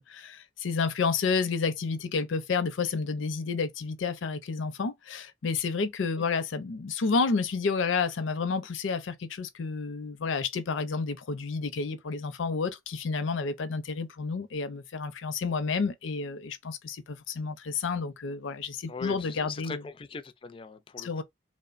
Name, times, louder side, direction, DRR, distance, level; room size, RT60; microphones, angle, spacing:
voice 1, 0.0-19.8 21.0-21.2, left 4 dB, 80° left, 0.5 m, -30 dB
voice 2, 18.9-21.2, left 5 dB, 25° left, 0.3 m, -40 dB
3.0 x 2.1 x 2.4 m
head